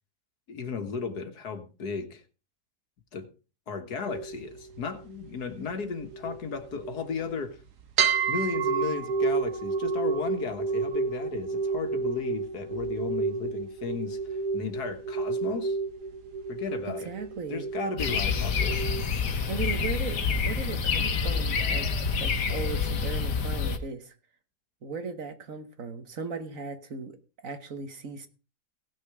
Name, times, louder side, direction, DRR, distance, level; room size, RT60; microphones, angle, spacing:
voice 1, 0.5-2.2 3.1-3.3 3.7-7.6 8.3-15.8 16.5-17.1 17.5-18.8, left 5 dB, 70° left, 8 dB, 2.0 m, -35 dB
sound 1, 4.1-7.5 8.0-19.0, right 5 dB, 75° right, 1.8 m, -31 dB
voice 2, 16.8-17.7 19.5-21.9 22.2-24.1 24.8-27.2 27.4-28.3, right 5 dB, 55° right, 9 dB, 1.6 m, -37 dB
sound 2, 18.0-23.8, left 5 dB, 90° left, 1.9 m, -27 dB
17.5 x 6.6 x 4.8 m, 0.33 s
omnidirectional pair, 1.7 m